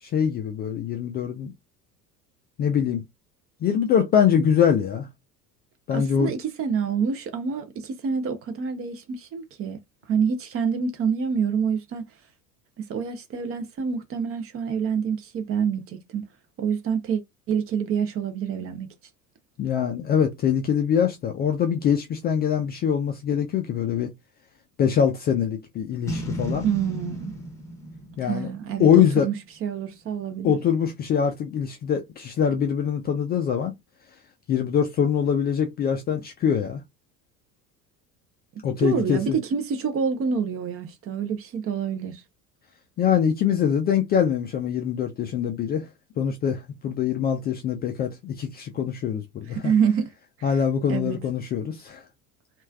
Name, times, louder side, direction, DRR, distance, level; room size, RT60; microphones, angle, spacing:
voice 1, 0.0-1.5 2.6-3.0 3.6-5.1 5.9-6.3 19.6-24.1 24.8-26.6 28.2-28.5 28.8-29.3 30.4-33.7 34.5-36.8 38.6-39.4 43.0-45.9 46.2-49.7 50.4-52.0, left 8 dB, 20° left, 0.4 m, -23 dB
voice 2, 5.9-9.8 10.1-12.0 12.8-16.3 16.6-17.2 17.5-18.9 26.6-27.3 28.2-30.6 38.8-42.2 49.5-50.1 50.9-51.2, right 6 dB, 30° right, 0.6 m, -27 dB
Boom, 26.1-29.4, right 1 dB, 5° left, 0.9 m, -34 dB
3.0 x 2.5 x 2.2 m
figure-of-eight pair, 70°, 48 cm